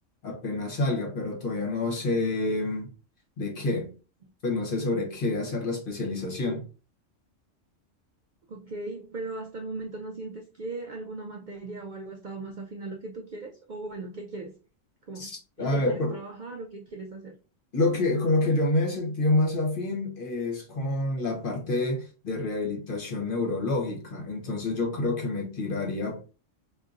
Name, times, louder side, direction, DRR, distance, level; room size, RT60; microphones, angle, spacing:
voice 1, 0.2-2.9 3.4-3.9 4.4-6.7 15.2-16.2 17.7-26.2, left 2 dB, 45° left, 1.0 m, -28 dB
voice 2, 8.5-14.5 15.1-15.3 15.6-17.3, right 2 dB, 60° right, 0.5 m, -38 dB
3.8 x 2.6 x 2.4 m
omnidirectional pair, 1.3 m